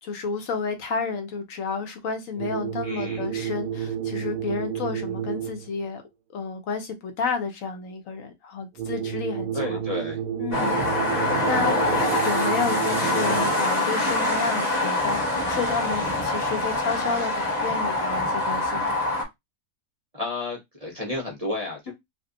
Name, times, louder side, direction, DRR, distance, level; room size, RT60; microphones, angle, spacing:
voice 1, 0.0-6.0 6.3-9.8 10.4-10.8 11.4-11.9 12.2-19.0 21.9-22.0, left 5 dB, 70° left, 1.1 m, -31 dB
sound 1, 2.4-5.8 8.8-13.8, right 9 dB, 80° right, 0.4 m, -31 dB
voice 2, 2.8-3.2 9.5-10.2 20.1-21.9, left 2 dB, 35° right, 0.6 m, -31 dB
sound 2, 10.5-19.2, left 2 dB, 30° left, 1.1 m, -24 dB
2.7 x 2.3 x 3.7 m
omnidirectional pair, 1.5 m